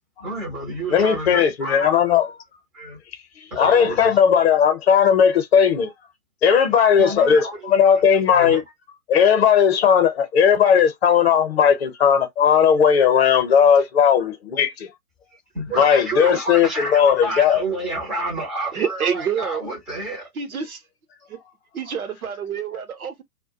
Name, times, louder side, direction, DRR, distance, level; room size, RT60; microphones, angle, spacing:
voice 1, 0.2-2.1 2.7-3.0 3.5-4.2 7.0-7.7 8.3-8.6 15.5-20.3, right 2 dB, ahead, 0.5 m, -30 dB
voice 2, 0.9-2.3 3.6-5.9 6.4-8.6 9.1-14.7 15.7-17.6, left 7 dB, 40° left, 0.8 m, -17 dB
voice 3, 18.7-19.7 20.4-20.8 21.3-21.4 21.7-23.2, right 7 dB, 65° right, 0.9 m, -27 dB
2.2 x 2.2 x 2.7 m
figure-of-eight pair, 125°, 46 cm